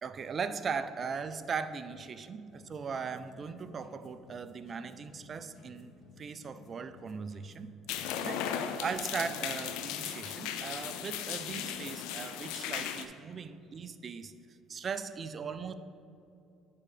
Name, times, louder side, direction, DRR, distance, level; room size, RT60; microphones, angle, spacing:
voice 1, 0.0-7.8 8.1-14.3 14.7-15.7, right 5 dB, 40° right, 11 dB, 0.3 m, -39 dB
sound 1, 2.5-7.7, left 4 dB, 50° left, 0.8 m, -57 dB
sound 2, 7.9-13.1, left 9 dB, 80° left, 0.3 m, -36 dB
9.6 x 3.7 x 3.3 m, 2.6 s
supercardioid pair, 85°, 0 cm